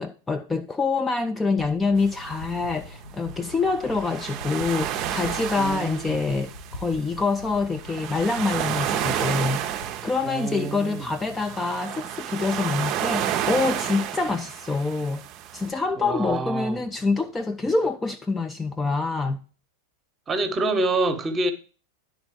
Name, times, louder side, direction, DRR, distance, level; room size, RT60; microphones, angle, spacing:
voice 1, 0.0-15.2 15.5-19.4, left 3 dB, 15° left, 0.4 m, -26 dB
sound 1, 1.6-9.9, left 1 dB, 60° left, 0.9 m, -42 dB
sound 2, 2.0-15.7, right 10 dB, 35° right, 0.5 m, -31 dB
voice 2, 5.6-6.2 10.2-11.1 16.0-16.9 20.3-21.5, right 2 dB, 20° right, 0.9 m, -27 dB
10.0 x 3.9 x 4.6 m
figure-of-eight pair, 90°, 0 cm